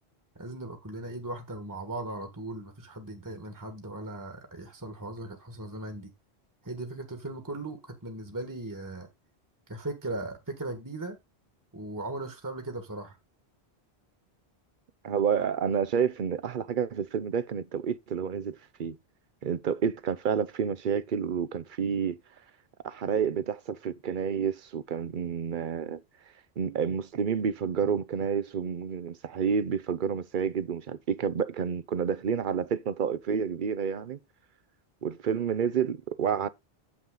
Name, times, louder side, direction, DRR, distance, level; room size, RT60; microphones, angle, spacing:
voice 1, 0.3-6.1 6.6-9.1 9.7-11.2 11.7-13.2, right 2 dB, 20° right, 1.6 m, -38 dB
voice 2, 15.0-19.0 19.4-22.2 22.8-26.0 26.6-34.2 35.0-36.5, right 7 dB, 55° right, 0.9 m, -29 dB
8.9 x 7.2 x 3.8 m
omnidirectional pair, 1.1 m